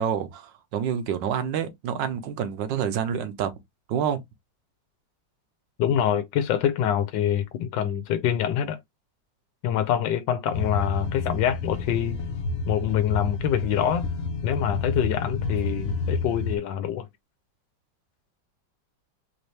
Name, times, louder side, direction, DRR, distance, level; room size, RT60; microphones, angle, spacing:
voice 1, 0.0-3.5 3.9-4.2, right 8 dB, 80° right, 1.5 m, -28 dB
voice 2, 5.8-8.8 9.6-12.2 12.7-14.0 14.4-17.1, left 9 dB, 80° left, 1.3 m, -25 dB
sound 1, 10.5-16.6, left 3 dB, 60° left, 1.0 m, -30 dB
4.4 x 2.7 x 3.2 m
omnidirectional pair, 2.0 m